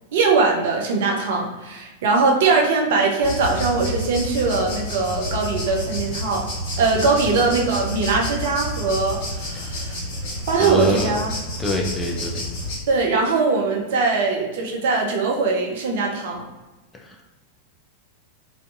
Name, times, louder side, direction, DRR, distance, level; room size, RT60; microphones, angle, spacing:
voice 1, 0.1-6.5 6.8-10.0 10.5-11.3 12.9-16.4, right 4 dB, 55° right, 1 dB, 0.4 m, -21 dB
athens cicadas crickets, 3.2-12.8, left 1 dB, 50° left, 1.1 m, -29 dB
voice 2, 6.9-7.4 9.5-9.6 10.5-11.2 11.6-12.5 16.9-17.3, left 1 dB, 15° left, 0 dB, 0.4 m, -27 dB
2.5 x 2.2 x 2.5 m, 1.1 s
figure-of-eight pair, 90°, 0 cm